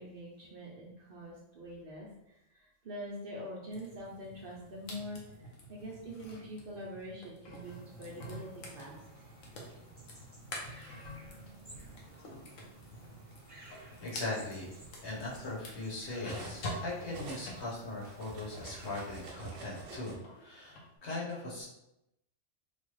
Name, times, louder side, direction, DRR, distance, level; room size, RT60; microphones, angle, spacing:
voice 1, 0.0-9.0, equal, 55° right, -3 dB, 0.7 m, -45 dB
sound 1, 3.7-18.8 19.2-20.9, left 1 dB, 90° left, 1.1 m, -48 dB
sound 2, 7.6-19.3, right 1 dB, 5° right, 1.3 m, -57 dB
Cutlery silverware, 10.6-11.9 12.9-13.1 13.5-16.7 17.0-20.2, right 3 dB, 90° right, 1.1 m, -49 dB
voice 2, 14.0-14.7 15.0-21.6, left 2 dB, 60° left, -5 dB, 1.2 m, -40 dB
3.3 x 2.3 x 3.1 m, 0.85 s
omnidirectional pair, 1.3 m